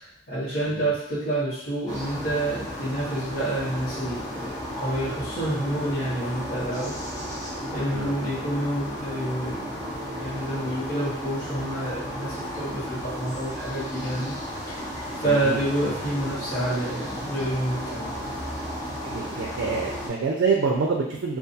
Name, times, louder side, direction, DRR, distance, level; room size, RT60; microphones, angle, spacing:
voice 1, 0.0-7.0 7.7-9.9 10.2-14.3 14.7-14.8 15.2-18.1, right 1 dB, 50° left, -12 dB, 1.1 m, -28 dB
sound 1, 1.9-20.1, equal, 20° left, 0.5 m, -34 dB
voice 2, 7.9-8.3 15.2-16.0 19.0-21.4, right 4 dB, 80° right, -1 dB, 0.4 m, -27 dB
2.4 x 2.3 x 2.6 m, 0.69 s
head